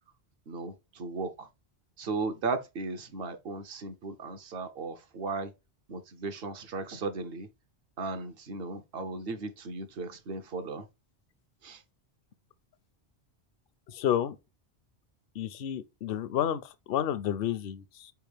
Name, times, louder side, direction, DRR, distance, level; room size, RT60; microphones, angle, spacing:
voice 1, 0.5-1.5 2.0-5.5 5.9-7.5 8.0-10.9 11.6-11.8, right 3 dB, 65° right, 0.9 m, -36 dB
voice 2, 13.9-14.4 15.4-16.6 16.9-18.1, left 10 dB, 65° left, 0.7 m, -30 dB
4.7 x 3.5 x 3.2 m
omnidirectional pair, 1.1 m